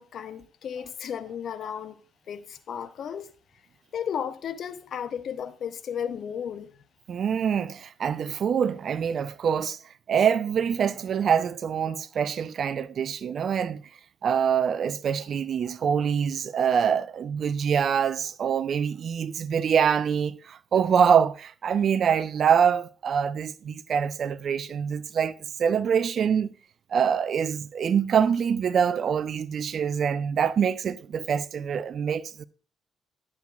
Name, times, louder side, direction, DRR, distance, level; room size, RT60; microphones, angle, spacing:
voice 1, 0.0-2.0 2.3-3.3 3.9-6.7, left 8 dB, 55° left, 0.7 m, -34 dB
voice 2, 7.1-9.8 10.1-13.8 14.2-26.5 26.9-32.4, right 7 dB, 50° right, 0.5 m, -25 dB
10.0 x 7.4 x 2.4 m
figure-of-eight pair, 45°, 0 cm